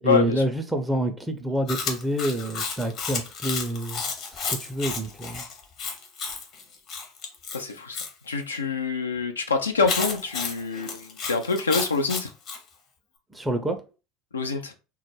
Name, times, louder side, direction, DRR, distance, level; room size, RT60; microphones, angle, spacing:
voice 1, 0.0-4.0 4.3-5.4 13.3-13.8, right 1 dB, 10° right, 0.4 m, -27 dB
Chewing mastication, 1.7-8.1 9.8-12.6, left 5 dB, 50° left, 0.7 m, -32 dB
voice 2, 7.5-8.0 8.3-12.3 14.3-14.7, left 4 dB, 85° left, 0.3 m, -26 dB
2.3 x 2.0 x 3.1 m
hypercardioid pair, 75°, 0 cm